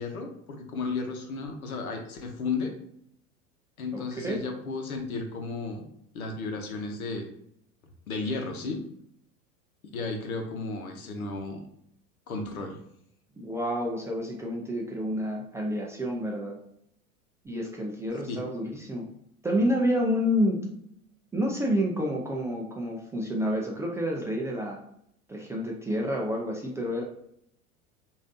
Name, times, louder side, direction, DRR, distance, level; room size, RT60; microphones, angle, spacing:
voice 1, 0.0-2.8 3.8-5.9 6.1-7.3 8.1-8.8 9.9-11.6 12.3-12.8 18.3-18.4, left 3 dB, 85° left, 4 dB, 0.9 m, -33 dB
voice 2, 3.9-4.4 13.4-16.6 17.4-19.1 19.4-20.7 21.3-24.8 25.3-27.0, equal, 5° right, -3 dB, 0.3 m, -29 dB
5.0 x 2.7 x 2.6 m, 0.71 s
hypercardioid pair, 90°, 42 cm